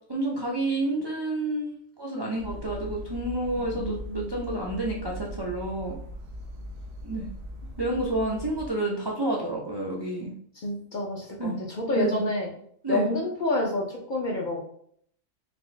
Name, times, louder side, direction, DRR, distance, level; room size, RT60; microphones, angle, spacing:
voice 1, 0.1-6.0 7.0-7.3 7.8-10.3 11.4-11.6 11.9-12.2 12.8-13.1, right 1 dB, 35° right, -3 dB, 0.4 m, -29 dB
sound 1, 2.4-8.7, left 1 dB, 80° right, 1.1 m, -40 dB
voice 2, 3.7-4.3 10.5-12.5 12.9-14.6, left 1 dB, 45° left, -1 dB, 0.7 m, -28 dB
4.4 x 2.5 x 3.2 m, 0.64 s
omnidirectional pair, 1.4 m